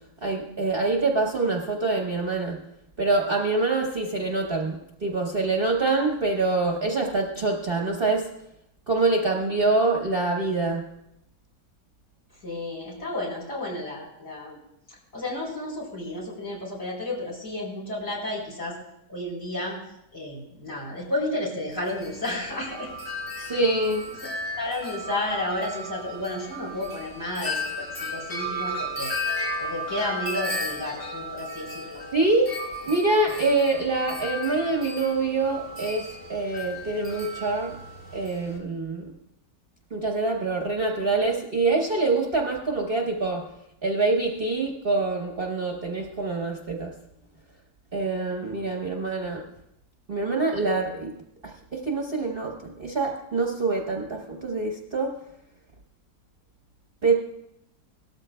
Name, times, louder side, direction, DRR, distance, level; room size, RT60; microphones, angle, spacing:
voice 1, 0.2-2.6 3.0-8.3 8.9-10.9 23.4-24.0 32.1-32.5 32.9-37.7 38.1-39.1 39.9-43.4 43.8-46.9 47.9-49.4 50.1-51.1 51.4-55.1 57.0-57.1, right 3 dB, 40° right, 0 dB, 1.0 m, -25 dB
voice 2, 12.4-14.6 14.9-18.8 19.1-19.8 20.1-22.9 23.4-23.6 24.6-29.1 29.6-32.0, left 1 dB, 50° left, -4 dB, 4.5 m, -32 dB
Wind chime, 21.7-38.6, left 1 dB, 25° left, 3.4 m, -34 dB
18.0 x 13.0 x 2.2 m, 0.81 s
omnidirectional pair, 1.8 m